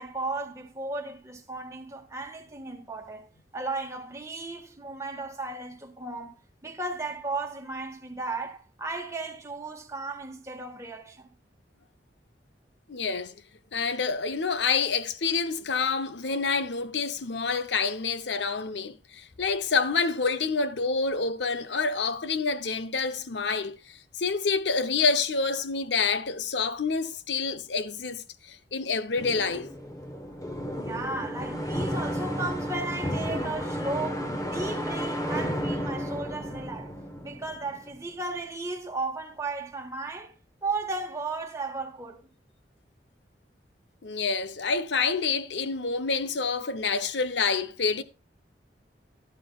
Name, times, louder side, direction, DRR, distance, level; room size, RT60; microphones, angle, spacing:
voice 1, 0.0-3.3 3.5-11.3 30.8-36.9 37.2-40.3 40.6-42.2, right 3 dB, 15° right, 1.5 m, -35 dB
voice 2, 12.9-13.3 13.7-23.8 24.2-29.7 44.0-48.0, left 4 dB, 80° left, 0.8 m, -27 dB
sound 1, 29.2-38.0, equal, 20° left, 1.2 m, -32 dB
12.5 x 11.5 x 2.4 m
head